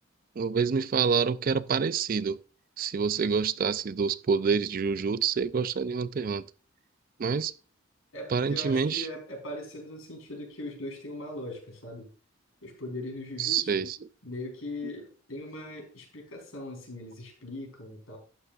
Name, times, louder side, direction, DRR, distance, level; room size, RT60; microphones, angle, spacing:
voice 1, 0.4-2.4 2.8-6.4 7.2-7.5 8.3-9.1 13.4-14.0, right 5 dB, 45° right, 0.4 m, -27 dB
voice 2, 8.1-12.1 12.6-13.8 14.2-18.2, left 1 dB, 90° left, 4.1 m, -40 dB
11.5 x 9.4 x 2.4 m
head